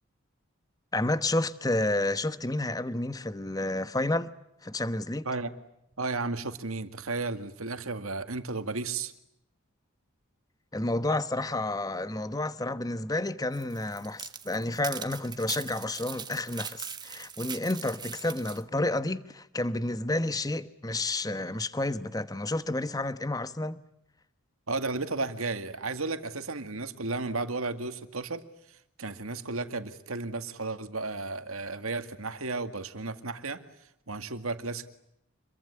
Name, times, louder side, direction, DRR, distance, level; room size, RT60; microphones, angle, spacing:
voice 1, 0.9-4.3 4.6-5.3 10.7-23.8, left 2 dB, 15° left, 1.0 m, -30 dB
voice 2, 6.0-9.1 24.7-28.4 29.0-33.6 34.1-34.9, right 3 dB, 85° right, 2.1 m, -33 dB
sound 1, 13.5-18.6, right 7 dB, 20° right, 1.3 m, -41 dB
26.5 x 22.5 x 9.9 m
head